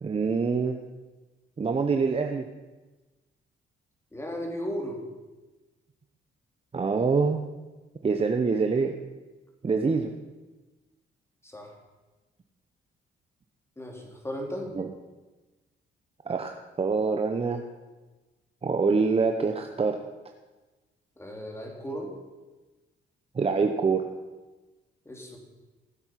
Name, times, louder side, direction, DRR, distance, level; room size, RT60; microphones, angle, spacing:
voice 1, 0.0-0.8 1.6-2.5 6.7-7.4 8.0-8.9 9.6-10.1 14.7-14.9 16.3-16.5 16.8-17.6 18.6-20.0 23.4-24.0, right 4 dB, 30° right, 4 dB, 0.9 m, -25 dB
voice 2, 4.1-5.0 11.4-11.8 13.8-14.7 21.2-22.1 25.0-25.4, equal, 15° left, 1 dB, 3.0 m, -35 dB
15.0 x 7.8 x 5.9 m, 1.2 s
cardioid pair, 90°, 20 cm